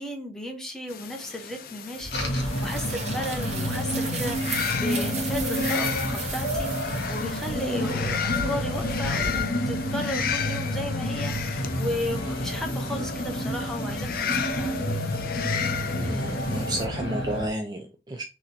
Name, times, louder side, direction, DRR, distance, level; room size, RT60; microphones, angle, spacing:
voice 1, 0.0-15.0, left 1 dB, 5° left, 0.8 m, -35 dB
sound 1, 0.9-16.9, left 8 dB, 55° left, 0.5 m, -34 dB
sound 2, 2.0-9.4, right 3 dB, 40° right, 1.0 m, -36 dB
sound 3, 2.1-17.5, left 1 dB, 75° left, 1.4 m, -29 dB
voice 2, 16.0-18.2, right 1 dB, 25° right, 0.4 m, -32 dB
4.0 x 3.0 x 4.2 m
head